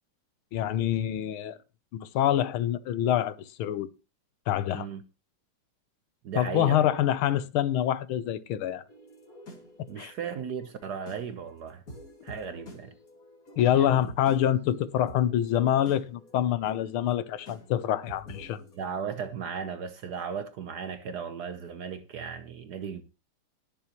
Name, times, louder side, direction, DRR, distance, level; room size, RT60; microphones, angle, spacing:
voice 1, 0.5-1.6 1.9-3.9 4.5-4.9 6.4-8.8 10.0-10.1 13.6-18.6, left 11 dB, 75° left, 1.5 m, -26 dB
voice 2, 4.7-5.0 6.2-6.9 9.9-11.8 12.2-12.9 13.7-14.1 18.8-23.0, right 6 dB, 60° right, 1.2 m, -36 dB
sound 1, 8.9-18.8, equal, 40° left, 2.7 m, -49 dB
19.5 x 7.0 x 3.0 m
omnidirectional pair, 2.4 m